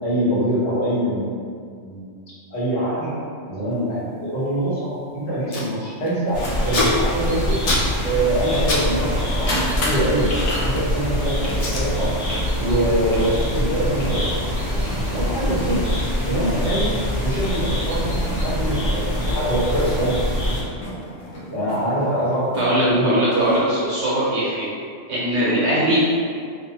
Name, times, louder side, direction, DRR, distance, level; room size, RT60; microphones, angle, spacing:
voice 1, 0.0-1.3 1.8-2.1 2.5-3.1 3.5-7.6 8.0-10.3 10.6-12.1 12.6-14.4 14.7-15.9 16.2-16.9 17.2-20.2 21.5-23.7, right 1 dB, 40° left, -10 dB, 0.9 m, -24 dB
sound 1, 3.7-3.8 5.8-22.9, equal, 75° left, 1.1 m, -34 dB
Packing tape duct tape, 5.0-5.1 5.2-5.7 6.0-8.9 9.1-11.0 11.5-11.9 12.3-12.6 12.9-19.1 19.4-19.5 19.7-22.1 22.4-24.3, left 2 dB, 60° left, 0.4 m, -32 dB
sound 2, 6.3-20.6, equal, 20° right, 1.4 m, -24 dB
voice 2, 22.6-24.7 25.1-26.0, right 1 dB, 75° right, -8 dB, 1.1 m, -21 dB
2.5 x 2.2 x 2.8 m, 2.2 s
omnidirectional pair, 1.3 m